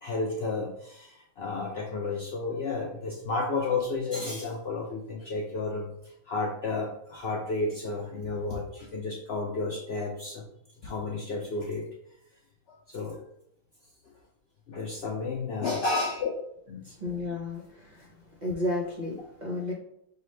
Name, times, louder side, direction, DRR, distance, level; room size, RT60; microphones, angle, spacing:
voice 1, 0.0-5.9 6.3-10.4 10.8-11.9 12.7-13.2 14.7-16.3 16.7-17.0, left 3 dB, 70° left, 0 dB, 0.6 m, -32 dB
voice 2, 15.7-16.0 17.0-18.1 18.4-19.7, left 2 dB, 45° right, -3 dB, 0.6 m, -33 dB
5.4 x 2.3 x 3.1 m, 0.75 s
omnidirectional pair, 1.6 m